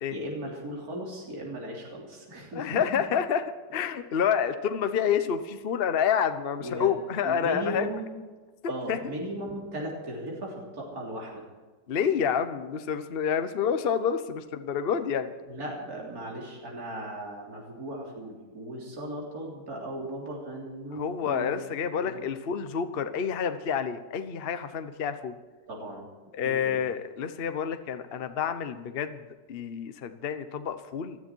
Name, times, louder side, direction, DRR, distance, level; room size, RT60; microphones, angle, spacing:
voice 1, 0.1-2.8 6.6-7.0 7.2-8.0 8.7-11.5 15.5-21.5 22.0-22.3 25.7-26.1 26.4-26.8, right 1 dB, 55° right, -3 dB, 4.0 m, -37 dB
voice 2, 2.5-3.4 3.7-7.9 8.6-9.0 11.9-15.3 20.9-25.4 26.3-31.2, left 7 dB, 40° left, 10 dB, 0.9 m, -28 dB
20.0 x 13.5 x 4.6 m, 1.4 s
omnidirectional pair, 1.9 m